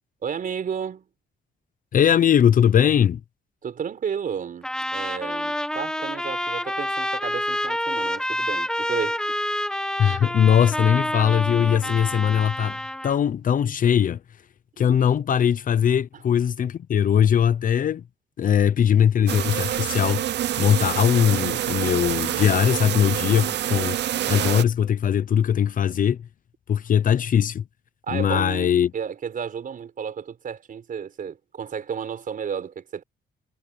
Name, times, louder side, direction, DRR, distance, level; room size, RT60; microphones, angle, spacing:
voice 1, 0.2-1.1 3.6-9.2 10.1-10.2 11.8-12.0 14.8-14.9 28.0-33.0, right 7 dB, 45° right, 5.1 m, -32 dB
voice 2, 1.9-3.2 10.0-14.2 14.8-18.0 18.4-20.2 20.6-24.0 24.3-26.2 26.7-27.6 28.1-28.9, left 9 dB, 45° left, 0.7 m, -20 dB
Trumpet, 4.6-13.2, left 1 dB, 5° left, 1.6 m, -28 dB
sound 1, 19.3-24.6, right 12 dB, 65° right, 0.7 m, -26 dB
cardioid pair, 140°, 19 cm